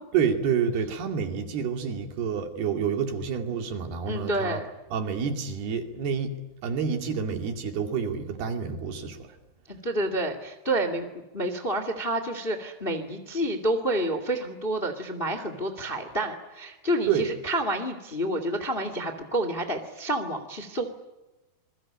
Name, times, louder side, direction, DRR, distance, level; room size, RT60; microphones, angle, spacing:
voice 1, 0.1-4.6 4.9-6.3 6.6-9.3 17.1-17.3, right 7 dB, 70° right, 5 dB, 4.4 m, -28 dB
voice 2, 4.0-4.7 9.7-11.1 11.3-20.8, right 1 dB, 20° left, 8 dB, 1.6 m, -29 dB
27.5 x 22.0 x 8.9 m, 1.0 s
omnidirectional pair, 4.9 m